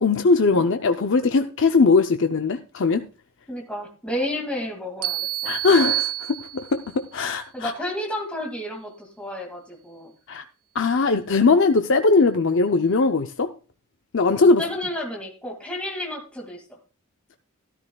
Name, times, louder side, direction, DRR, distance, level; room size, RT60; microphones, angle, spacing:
voice 1, 0.0-3.0 5.4-7.7 10.3-10.4 10.7-13.5 14.1-14.6, left 4 dB, 55° left, 0.6 m, -20 dB
voice 2, 3.5-5.5 7.5-10.1 14.6-16.6, left 1 dB, 5° left, 2.1 m, -31 dB
sound 1, 5.0-6.9, right 14 dB, 85° right, 0.7 m, -28 dB
13.0 x 13.0 x 2.3 m
head